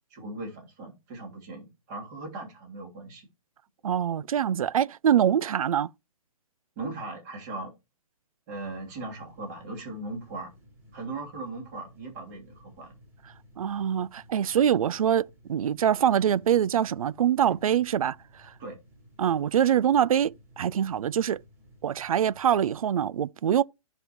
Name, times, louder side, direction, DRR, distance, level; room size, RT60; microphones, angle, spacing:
voice 1, 0.1-3.3 6.8-7.7 8.5-10.5 10.9-12.9 18.6-18.8, right 2 dB, 30° right, 2.9 m, -38 dB
voice 2, 3.8-5.9 13.6-18.2 19.2-21.4 21.8-23.6, right 9 dB, 70° right, 0.5 m, -24 dB
sound 1, 8.5-22.8, equal, 10° right, 3.6 m, -56 dB
15.0 x 5.4 x 3.0 m
hypercardioid pair, 160°, 19 cm